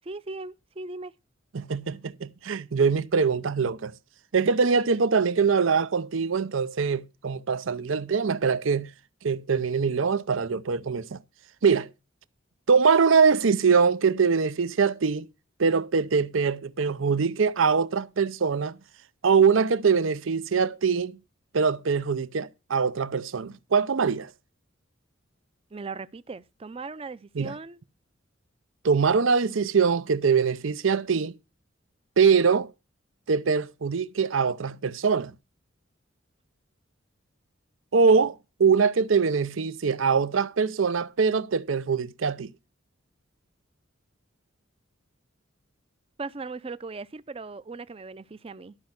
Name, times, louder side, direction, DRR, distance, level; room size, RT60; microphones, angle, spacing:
voice 1, 0.0-1.1 25.7-27.8 46.2-48.8, right 3 dB, 30° right, 0.5 m, -38 dB
voice 2, 1.5-3.9 4.3-8.9 9.2-11.2 11.6-11.9 12.7-15.3 15.6-18.8 19.2-21.2 21.5-24.3 27.4-27.5 28.8-31.4 32.2-32.7 33.3-35.3 37.9-42.5, right 5 dB, 80° right, 0.6 m, -23 dB
12.5 x 5.4 x 5.8 m
head